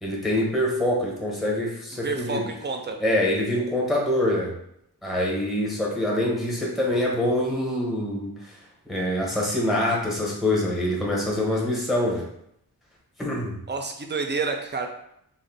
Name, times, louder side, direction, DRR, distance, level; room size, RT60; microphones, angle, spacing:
voice 1, 0.0-2.4 3.0-4.5 5.0-8.3 8.9-12.2 13.2-13.6, left 1 dB, ahead, -4 dB, 0.7 m, -25 dB
voice 2, 2.0-3.0 13.7-14.9, right 4 dB, 30° right, 4 dB, 0.4 m, -29 dB
2.6 x 2.0 x 3.8 m, 0.74 s
wide cardioid pair, 80°, 38 cm